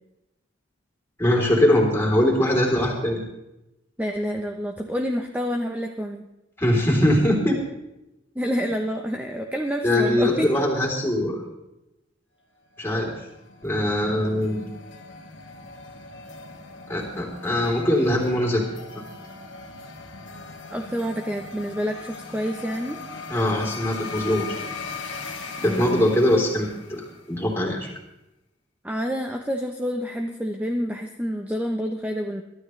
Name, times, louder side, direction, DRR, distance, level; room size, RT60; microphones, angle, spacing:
voice 1, 1.2-3.2 6.6-7.6 9.8-11.4 12.8-13.3 13.6-14.7 16.9-18.6 23.3-24.4 25.6-27.9, left 1 dB, 10° left, -2 dB, 3.4 m, -22 dB
voice 2, 4.0-6.2 8.4-10.5 20.7-23.0 25.6-26.2 28.8-32.4, equal, 10° right, 3 dB, 0.7 m, -28 dB
sound 1, 12.8-27.4, left 4 dB, 70° left, 1.9 m, -39 dB
22.5 x 12.5 x 3.2 m, 0.93 s
head